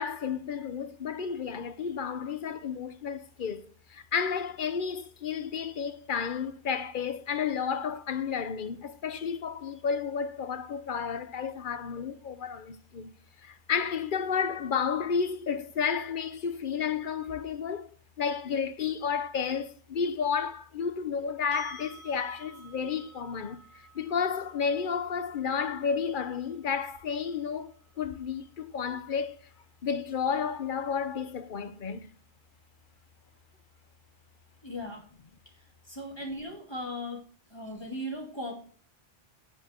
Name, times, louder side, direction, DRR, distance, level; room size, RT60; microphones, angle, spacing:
voice 1, 0.0-13.1 13.4-17.9 18.2-23.6 23.9-29.4 29.8-32.1, left 6 dB, 50° left, 0.8 m, -32 dB
sound 1, 21.5-29.3 32.1-32.2, right 1 dB, 70° left, 3.6 m, -54 dB
voice 2, 34.6-35.1 35.9-37.2 37.5-38.5, left 1 dB, 20° left, 2.4 m, -37 dB
9.5 x 7.5 x 4.3 m
omnidirectional pair, 1.2 m